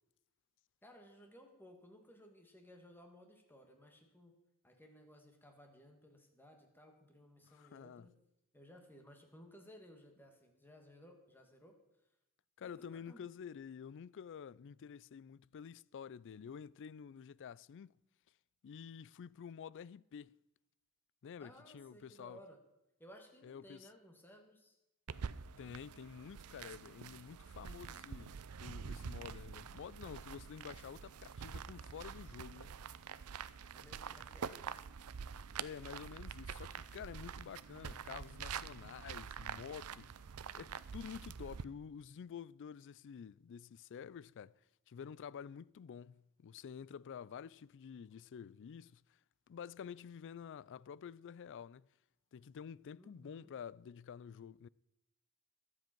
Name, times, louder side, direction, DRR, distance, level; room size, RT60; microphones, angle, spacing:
voice 1, 0.8-4.4 4.6-8.1 8.5-11.8 12.6-13.3 21.4-22.6 23.0-24.8 33.7-34.8 53.0-53.5, equal, 10° left, 2.1 m, -59 dB
voice 2, 7.5-8.1 12.6-17.9 18.6-20.4 21.2-22.4 23.4-23.9 25.6-32.7 35.6-40.1 40.5-44.5 44.9-49.0 49.5-51.9 52.3-54.7, left 7 dB, 55° left, 0.3 m, -49 dB
sound 1, 25.1-41.6, right 6 dB, 80° right, 0.6 m, -46 dB
23.0 x 7.8 x 4.5 m
head